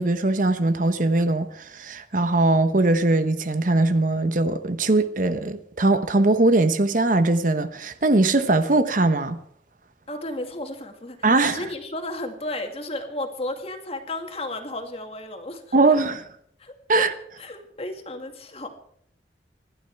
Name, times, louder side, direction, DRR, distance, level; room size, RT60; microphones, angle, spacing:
voice 1, 0.0-9.4 11.2-11.6 15.7-16.2 16.9-17.1, right 2 dB, 50° right, 1.0 m, -21 dB
voice 2, 10.1-11.2 11.5-16.0 16.6-17.0 17.4-18.7, left 1 dB, 35° left, 2.2 m, -33 dB
26.0 x 12.0 x 4.7 m
head